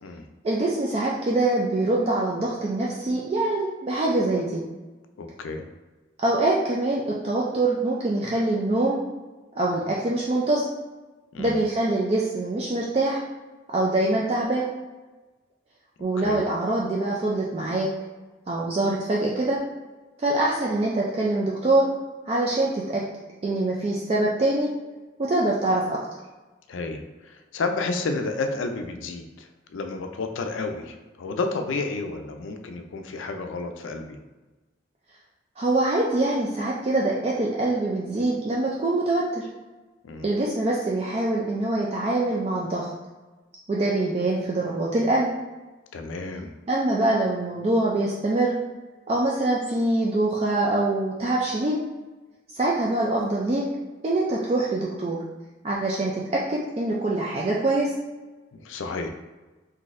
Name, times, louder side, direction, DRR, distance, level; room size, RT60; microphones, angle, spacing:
voice 1, 0.4-4.6 6.2-9.0 9.6-10.7 11.4-13.2 13.7-14.7 16.0-17.9 18.5-19.6 20.2-21.9 22.3-23.0 23.4-24.7 25.2-26.0 35.6-39.5 40.2-42.9 43.7-45.3 46.7-48.5 49.1-51.8 52.5-53.6 54.0-55.2 55.6-57.9, right 2 dB, 30° right, -4 dB, 0.3 m, -24 dB
voice 2, 5.2-5.6 11.3-11.6 16.2-16.4 26.7-34.2 40.0-40.3 45.9-46.5 58.5-59.1, left 3 dB, 90° left, 5 dB, 0.4 m, -31 dB
3.9 x 2.6 x 2.5 m, 1.2 s
head